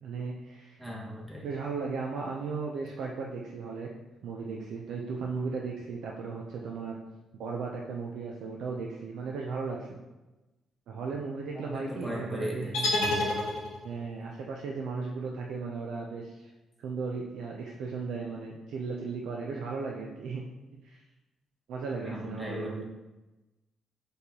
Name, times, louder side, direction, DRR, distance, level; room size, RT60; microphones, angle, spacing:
voice 1, 0.0-0.8 1.4-3.9 4.2-7.0 7.3-10.0 10.9-12.9 13.8-16.5 16.8-20.4 20.8-21.0 21.7-22.8, right 4 dB, 75° right, -1 dB, 0.4 m, -36 dB
voice 2, 0.8-1.5 11.5-12.7 22.0-22.9, equal, 10° right, -4 dB, 0.9 m, -37 dB
sound 1, 12.7-14.0, left 2 dB, 80° left, 0.7 m, -29 dB
4.2 x 3.3 x 2.8 m, 1.1 s
cardioid pair, 90°, 0 cm